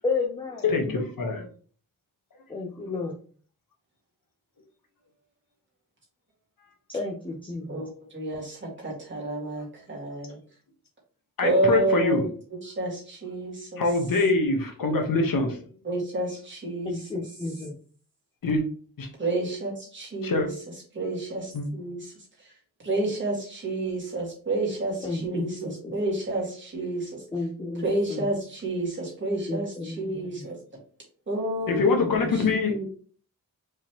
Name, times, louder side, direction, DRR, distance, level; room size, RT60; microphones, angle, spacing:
voice 1, 0.0-0.7 2.5-3.1 6.9-7.8 16.8-17.7 25.0-25.9 27.3-28.3 29.5-30.4 31.7-32.3, left 3 dB, 15° left, 1 dB, 0.6 m, -32 dB
voice 2, 0.6-1.5 11.4-12.2 13.8-15.6 18.4-18.6 19.0-19.1 20.2-20.5 21.5-21.7 31.7-32.7, left 3 dB, 80° left, 3 dB, 1.2 m, -24 dB
voice 3, 7.7-10.4 11.4-12.3 12.6-13.8 15.8-17.1 19.2-20.5 20.9-22.1 22.8-27.2 27.8-30.6 31.3-31.8 32.3-32.8, right 2 dB, 35° right, -3 dB, 1.9 m, -29 dB
4.8 x 3.7 x 2.9 m, 0.43 s
wide cardioid pair, 170°, 33 cm